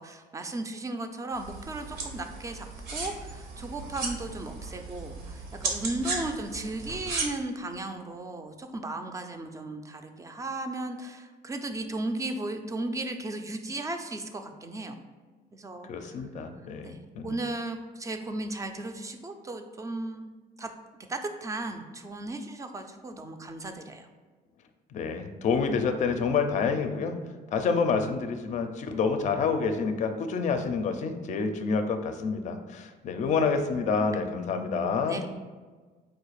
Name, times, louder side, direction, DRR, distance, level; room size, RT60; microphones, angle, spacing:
voice 1, 0.0-2.7 2.9-15.0 15.5-16.1 16.8-20.3 20.6-20.7 21.1-24.1 35.1-35.3, right 2 dB, 20° right, 6 dB, 0.4 m, -35 dB
sound 1, 1.3-7.2, right 3 dB, 85° right, 1.0 m, -36 dB
voice 2, 15.9-17.3 24.9-27.2 27.5-35.2, left 5 dB, 45° left, 7 dB, 0.5 m, -28 dB
4.4 x 2.4 x 4.8 m, 1.4 s
cardioid pair, 110°, 17 cm